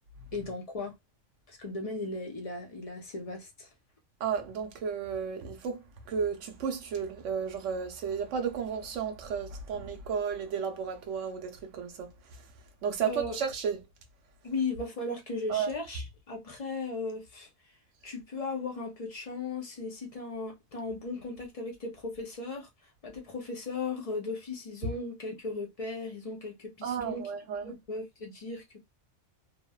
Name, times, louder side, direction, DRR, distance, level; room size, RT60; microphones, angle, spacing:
voice 1, 0.3-0.9 1.5-3.7 13.0-13.4 14.4-17.5 18.0-22.7 23.0-27.3 27.6-28.8, left 3 dB, 40° left, 0.6 m, -37 dB
voice 2, 4.2-12.4 12.8-13.8 15.5-15.7 26.8-27.7, right 6 dB, 75° right, 0.9 m, -33 dB
3.0 x 2.0 x 2.2 m
omnidirectional pair, 1.4 m